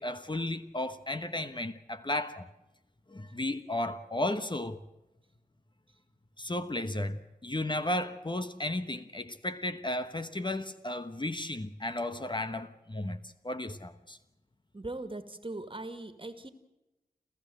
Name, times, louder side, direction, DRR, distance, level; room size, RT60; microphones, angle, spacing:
voice 1, 0.0-2.5 3.1-4.8 6.4-14.2, left 1 dB, 30° left, 1.1 m, -34 dB
voice 2, 14.7-16.5, right 2 dB, 35° right, 2.1 m, -40 dB
28.5 x 14.0 x 7.8 m
cardioid pair, 45°, 16 cm